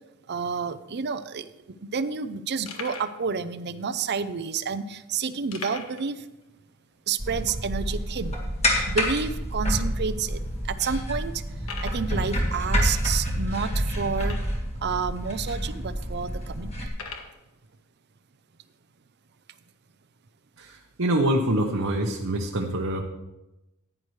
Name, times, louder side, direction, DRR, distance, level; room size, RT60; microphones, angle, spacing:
voice 1, 0.3-1.5 1.8-6.2 7.1-8.4 8.9-10.4 10.7-11.3 11.8-14.4 14.8-16.7, right 5 dB, 50° right, 13 dB, 0.6 m, -29 dB
sound 1, 1.2-1.3 1.5-1.6 2.1-2.2 2.7-3.2 3.9-4.0 5.5-6.1 6.4-6.5 6.9-7.0 7.6-7.7 8.6-9.1 9.9-10.0 10.5-10.6 11.6-12.1 14.1-14.7 15.5-15.6 16.9-17.3, left 4 dB, 85° left, 1.4 m, -39 dB
sound 2, 7.2-16.9, equal, 30° left, 1.8 m, -28 dB
voice 2, 20.6-23.0, right 1 dB, 70° right, 1 dB, 1.0 m, -25 dB
15.0 x 9.8 x 3.2 m, 0.98 s
head